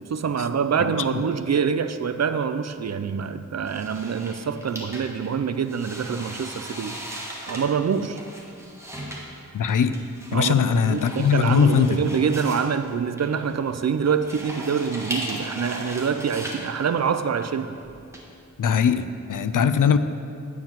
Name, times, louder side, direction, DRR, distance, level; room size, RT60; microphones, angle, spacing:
voice 1, 0.0-7.0 7.5-8.2 10.3-17.8, right 6 dB, 55° right, 10 dB, 0.5 m, -25 dB
sound 1, 3.7-18.2, equal, 10° right, 1.6 m, -38 dB
voice 2, 9.5-9.9 10.3-12.0 18.6-20.0, left 7 dB, 80° left, 11 dB, 0.5 m, -20 dB
9.3 x 4.7 x 7.3 m, 2.5 s
wide cardioid pair, 75°, 31 cm